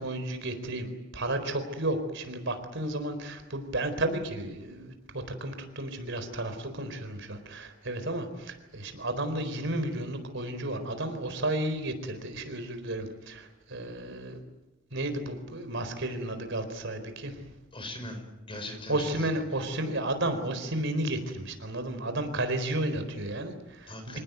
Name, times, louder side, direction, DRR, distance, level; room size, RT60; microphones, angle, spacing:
voice 1, 0.0-14.4 14.9-17.4 18.9-24.2, right 1 dB, 65° right, 8 dB, 4.3 m, -32 dB
voice 2, 17.7-19.3 23.9-24.2, left 1 dB, 25° left, 6 dB, 5.8 m, -40 dB
27.0 x 18.5 x 9.4 m, 1.0 s
head